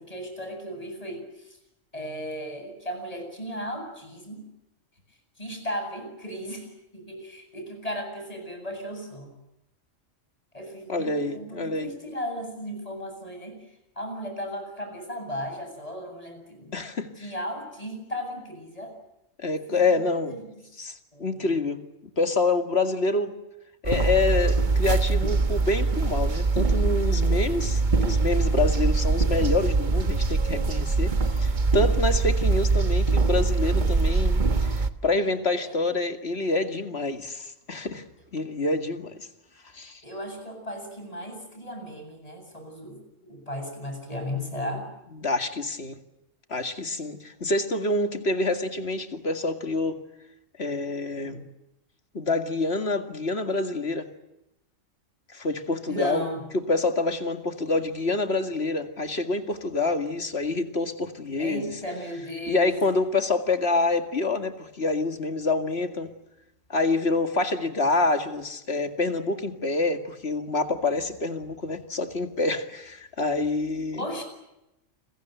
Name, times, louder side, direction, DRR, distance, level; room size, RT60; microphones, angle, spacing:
voice 1, 0.0-1.6 1.9-4.4 5.4-9.3 10.5-16.8 17.2-18.9 19.7-20.0 20.3-20.4 21.1-21.5 35.6-35.8 40.0-44.9 51.2-51.4 55.9-56.4 61.4-62.8 73.9-74.2, equal, 25° left, 8.0 m, -36 dB
voice 2, 10.9-11.9 16.7-17.1 19.4-20.4 20.8-21.8 22.2-23.4 23.8-38.0 38.3-39.3 39.7-40.0 45.2-46.0 46.5-50.0 50.6-51.4 52.1-54.1 55.3-56.2 56.5-61.7 62.5-66.1 66.7-74.1, left 3 dB, 50° left, 2.4 m, -27 dB
sound 1, 23.8-34.9, right 3 dB, 40° right, 1.3 m, -23 dB
29.5 x 22.5 x 8.1 m
omnidirectional pair, 1.3 m